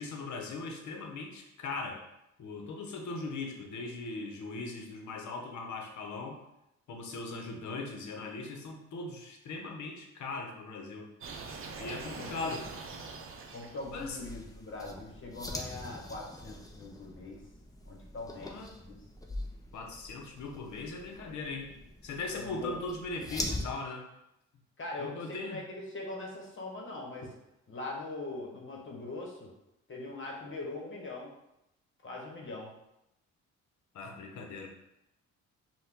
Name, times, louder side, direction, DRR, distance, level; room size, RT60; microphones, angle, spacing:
voice 1, 0.0-2.0 2.4-6.4 6.9-11.1 11.8-12.7 13.9-14.3 18.3-18.8 19.7-21.7 22.0-24.1 25.0-25.6 33.9-34.7, left 3 dB, 70° left, 2 dB, 1.0 m, -39 dB
sound 1, 11.2-13.9, right 4 dB, 45° right, 0.7 m, -43 dB
voice 2, 11.8-12.5 13.5-17.4 17.8-18.5 18.8-19.0 22.3-22.7 24.8-27.3 27.7-29.5 29.9-31.3 32.0-32.7, left 2 dB, 40° left, -2 dB, 1.4 m, -41 dB
sound 2, 13.8-23.7, left 1 dB, 10° left, 0.6 m, -43 dB
5.6 x 2.5 x 3.6 m, 0.86 s
cardioid pair, 90°, 30 cm